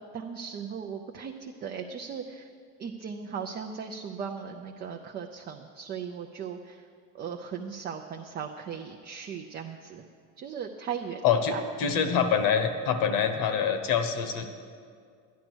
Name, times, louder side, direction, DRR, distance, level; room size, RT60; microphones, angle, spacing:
voice 1, 0.0-2.5 2.8-6.8 7.1-10.0 10.4-11.2 11.5-11.6, right 7 dB, 30° right, 2 dB, 0.5 m, -37 dB
voice 2, 11.2-14.5, left 7 dB, 70° left, 8 dB, 1.3 m, -25 dB
12.5 x 10.5 x 6.1 m, 2.2 s
cardioid pair, 160°, 35 cm